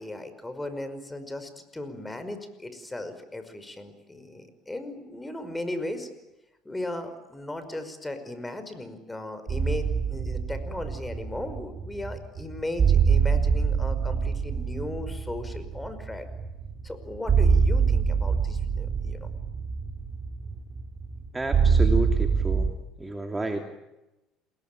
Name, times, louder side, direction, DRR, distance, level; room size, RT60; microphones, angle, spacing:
voice 1, 0.0-6.1 6.7-16.3 16.8-19.3, left 1 dB, 10° left, 10 dB, 5.3 m, -37 dB
sound 1, 9.5-22.7, right 6 dB, 35° right, 3.9 m, -25 dB
voice 2, 21.3-22.7 23.0-23.7, right 1 dB, 15° right, 4 dB, 2.9 m, -31 dB
28.5 x 21.0 x 9.2 m, 0.97 s
supercardioid pair, 105°, 0 cm